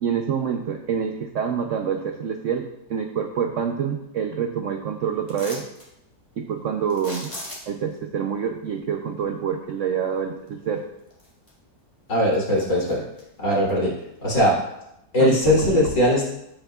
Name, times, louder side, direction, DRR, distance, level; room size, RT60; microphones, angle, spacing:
voice 1, 0.0-5.6 6.4-7.3 7.7-10.8 15.2-15.4 15.7-15.9, right 7 dB, 65° right, 4 dB, 0.7 m, -27 dB
sound 1, 5.3-5.9 6.9-7.9 10.5-10.6 11.1-11.8 12.1-13.2 13.7-13.8, left 1 dB, 20° left, 1.7 m, -38 dB
voice 2, 12.1-13.0 13.4-13.9 14.2-14.6 15.1-16.3, equal, 45° left, -5 dB, 3.2 m, -20 dB
15.0 x 5.7 x 2.3 m, 0.83 s
omnidirectional pair, 1.9 m